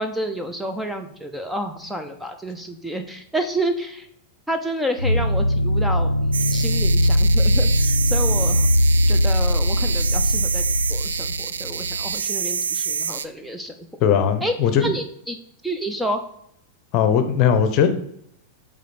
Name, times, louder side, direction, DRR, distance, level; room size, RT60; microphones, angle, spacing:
voice 1, 0.0-4.1 4.5-8.7 9.1-13.9 14.4-15.4 15.6-16.2, right 1 dB, 5° right, 6 dB, 0.7 m, -29 dB
sound 1, 5.0-12.1, equal, 85° left, 0.4 m, -20 dB
sound 2, 6.3-13.3, right 6 dB, 70° right, 0.3 m, -27 dB
voice 2, 14.0-14.9 16.9-17.9, left 8 dB, 40° left, 8 dB, 0.8 m, -18 dB
8.3 x 3.8 x 4.1 m, 0.72 s
figure-of-eight pair, 90°, 0 cm